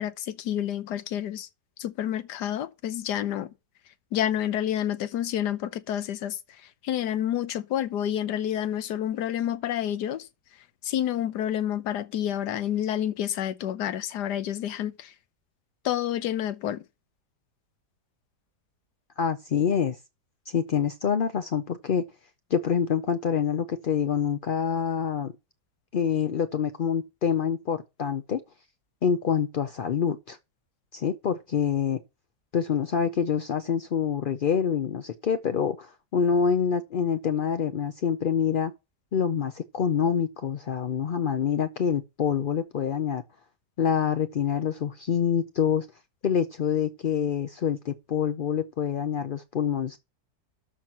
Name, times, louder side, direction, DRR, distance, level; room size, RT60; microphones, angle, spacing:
voice 1, 0.0-1.5 1.8-3.5 4.1-10.3 10.8-15.1 15.8-16.8, left 11 dB, 90° left, 1.4 m, -29 dB
voice 2, 19.2-20.0 20.5-22.0 22.5-25.3 25.9-28.4 29.0-30.4 30.9-32.0 32.5-38.7 39.1-43.2 43.8-45.9 46.2-50.0, left 7 dB, 70° left, 0.5 m, -26 dB
12.5 x 4.5 x 5.9 m
omnidirectional pair, 1.7 m